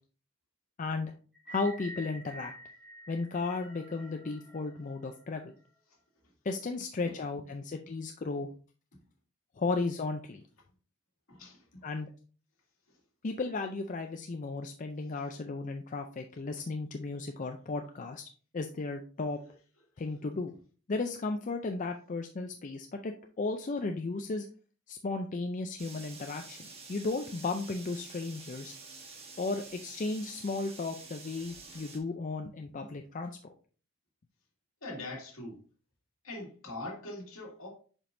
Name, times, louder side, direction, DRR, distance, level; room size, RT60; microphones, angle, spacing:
voice 1, 0.8-1.1 1.5-2.5 3.1-5.5 6.4-8.5 9.6-10.4 11.8-12.1 13.2-18.2 18.5-19.4 20.0-20.5 20.9-24.5 24.9-28.7 29.4-33.5, left 3 dB, 35° left, 0.4 m, -35 dB
sound 1, 1.3-5.7, right 1 dB, 5° right, 2.5 m, -49 dB
voice 2, 11.3-11.9 34.8-35.6 36.2-37.7, left 2 dB, 70° left, 2.2 m, -42 dB
sound 2, 25.8-32.0, right 4 dB, 30° right, 1.2 m, -49 dB
7.2 x 5.2 x 2.6 m
head